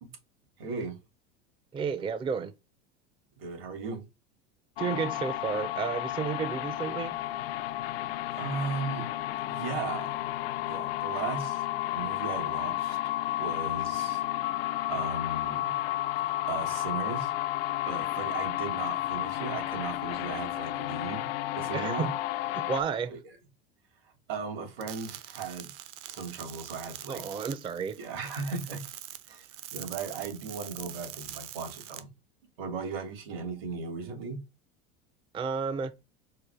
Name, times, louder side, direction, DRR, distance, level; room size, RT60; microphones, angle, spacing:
voice 1, 0.6-1.0 3.4-4.0 8.3-9.2 9.5-10.1 10.7-11.7 11.9-13.0 13.4-14.2 14.9-15.8 16.5-17.3 17.8-21.3 21.5-22.1 23.1-23.2 24.0-25.7 26.1-27.2 28.0-28.9 29.3-32.1 32.6-34.4, right 5 dB, 80° right, 2.5 m, -37 dB
voice 2, 1.7-2.5 4.8-7.2 21.7-22.1 22.5-23.1 27.1-28.0 35.3-35.9, right 6 dB, 20° right, 0.4 m, -32 dB
sound 1, 4.8-22.8, left 15 dB, 80° left, 0.5 m, -32 dB
sound 2, 24.8-32.0, right 12 dB, 65° right, 0.8 m, -44 dB
4.6 x 2.3 x 4.7 m
supercardioid pair, 110°, 29 cm